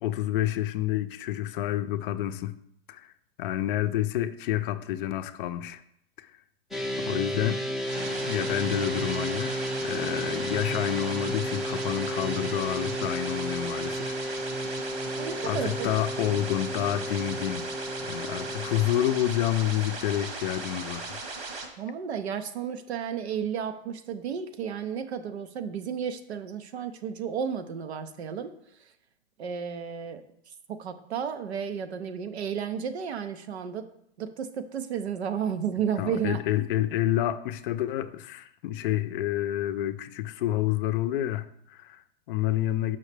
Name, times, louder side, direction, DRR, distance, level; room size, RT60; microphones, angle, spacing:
voice 1, 0.0-2.6 2.9-3.1 3.4-5.8 6.2-6.3 7.0-7.7 8.0-14.2 15.4-17.7 18.0-21.2 36.0-43.0, left 13 dB, 55° left, 0.5 m, -29 dB
sound 1, 6.7-18.9, equal, ahead, 0.5 m, -33 dB
sound 2, 7.8-21.6, right 3 dB, 65° right, 1.5 m, -37 dB
voice 2, 15.2-15.9 21.8-28.5 29.4-30.2 30.7-33.9 34.2-36.4, right 7 dB, 85° right, 0.7 m, -32 dB
6.3 x 5.6 x 3.3 m
hypercardioid pair, 120°, 32 cm